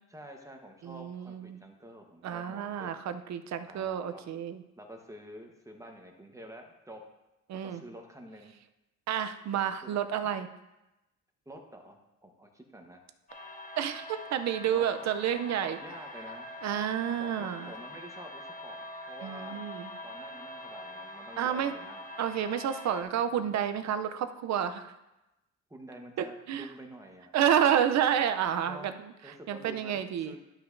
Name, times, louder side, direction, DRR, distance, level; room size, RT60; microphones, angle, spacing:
voice 1, 0.1-2.9 3.7-4.4 4.8-7.0 7.6-8.5 9.8-10.0 11.5-13.0 14.7-15.3 15.6-16.5 17.2-19.6 20.0-22.1 25.7-27.3 28.6-28.9 29.2-30.4, right 1 dB, 10° right, 2 dB, 1.1 m, -48 dB
voice 2, 0.8-1.6 2.2-4.6 7.5-7.8 9.1-10.5 13.8-15.8 16.6-17.7 19.2-19.9 21.4-21.7 22.2-24.8 26.2-26.7 27.3-29.0 29.5-30.3, right 9 dB, 65° right, 9 dB, 0.6 m, -30 dB
sound 1, 13.3-23.0, left 1 dB, 25° left, 1.3 m, -44 dB
12.0 x 5.7 x 2.6 m, 0.96 s
cardioid pair, 90°, 30 cm